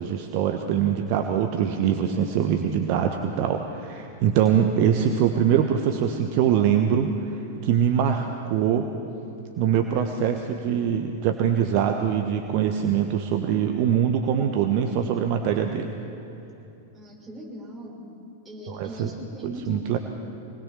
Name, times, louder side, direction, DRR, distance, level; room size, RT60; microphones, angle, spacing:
voice 1, 0.0-8.9 9.6-15.9 18.7-19.1 19.7-20.0, right 8 dB, 45° right, 4 dB, 1.3 m, -23 dB
voice 2, 16.9-18.0 18.4-20.0, equal, 15° right, -2 dB, 5.9 m, -39 dB
25.0 x 20.0 x 5.9 m, 2.9 s
figure-of-eight pair, 95°, 0 cm